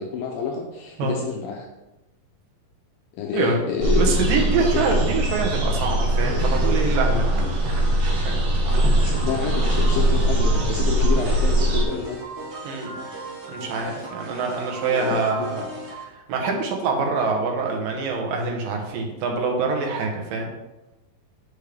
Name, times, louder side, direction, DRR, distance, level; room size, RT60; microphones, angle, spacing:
voice 1, 0.0-1.7 3.1-4.2 4.6-4.9 9.0-12.2 14.9-15.5, left 6 dB, 80° left, 1 dB, 2.4 m, -28 dB
sound 1, 3.8-11.8, right 1 dB, 55° right, 2.2 m, -21 dB
voice 2, 3.9-7.2 7.6-7.9 8.2-8.5 12.6-13.0 13.5-15.6 15.9-20.5, right 4 dB, 70° right, 1 dB, 2.6 m, -25 dB
sound 2, 8.7-16.0, right 2 dB, 30° right, 1.2 m, -38 dB
8.4 x 5.3 x 3.4 m, 1.0 s
omnidirectional pair, 4.2 m